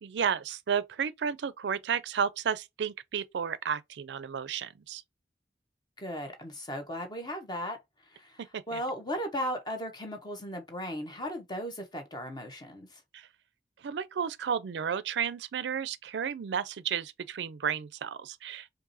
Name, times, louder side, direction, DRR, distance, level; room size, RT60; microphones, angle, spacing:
voice 1, 0.0-5.0 8.4-8.8 13.1-13.3 13.8-18.7, right 7 dB, 85° right, 0.4 m, -32 dB
voice 2, 6.0-7.8 8.0-13.0, equal, 25° left, 1.0 m, -36 dB
4.7 x 2.6 x 2.6 m
head